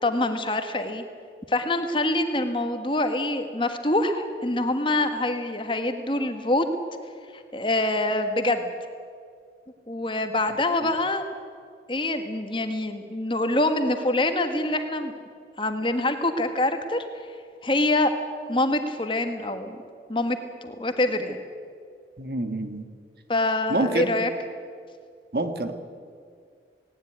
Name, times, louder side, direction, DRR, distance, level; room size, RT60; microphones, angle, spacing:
voice 1, 0.0-1.0 1.5-6.6 7.3-8.7 9.9-11.2 11.9-15.1 15.6-17.0 17.6-18.1 18.5-19.8 20.1-21.4 23.3-24.3, left 2 dB, 30° left, 7 dB, 1.5 m, -25 dB
voice 2, 22.2-22.9 23.7-24.1 25.3-25.7, right 2 dB, 65° right, 8 dB, 1.7 m, -27 dB
18.5 x 18.5 x 9.5 m, 2.2 s
head